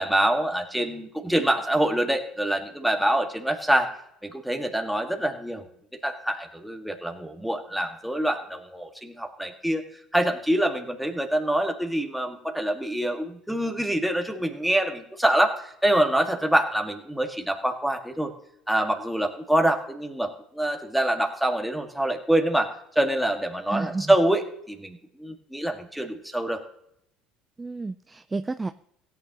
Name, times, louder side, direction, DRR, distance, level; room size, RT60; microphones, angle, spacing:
voice 1, 0.0-3.9 4.2-5.6 6.0-9.8 10.1-18.3 18.7-26.6, right 1 dB, ahead, 3 dB, 1.9 m, -25 dB
voice 2, 23.7-24.1 27.6-28.7, right 3 dB, 20° right, 10 dB, 0.5 m, -31 dB
16.5 x 9.3 x 3.0 m, 0.73 s
hypercardioid pair, 70°, 0 cm